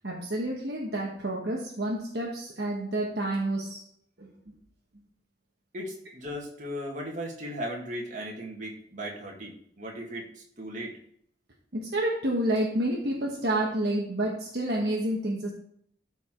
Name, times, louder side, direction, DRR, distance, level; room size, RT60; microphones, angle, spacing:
voice 1, 0.0-3.8 4.2-4.3 11.7-15.5, right 1 dB, 60° right, -2 dB, 1.3 m, -29 dB
voice 2, 5.7-10.9, equal, 40° right, -2 dB, 2.1 m, -37 dB
13.0 x 4.7 x 3.8 m, 0.65 s
head